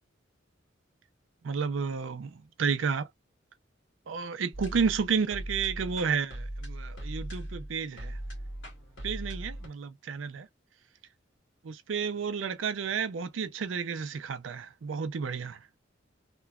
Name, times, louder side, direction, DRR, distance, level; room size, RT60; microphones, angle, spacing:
voice 1, 1.4-3.1 4.1-8.2 9.0-10.5 11.6-15.6, right 6 dB, 85° right, 0.5 m, -31 dB
sound 1, 4.5-9.7, right 1 dB, 75° left, 1.5 m, -39 dB
2.9 x 2.2 x 2.3 m
head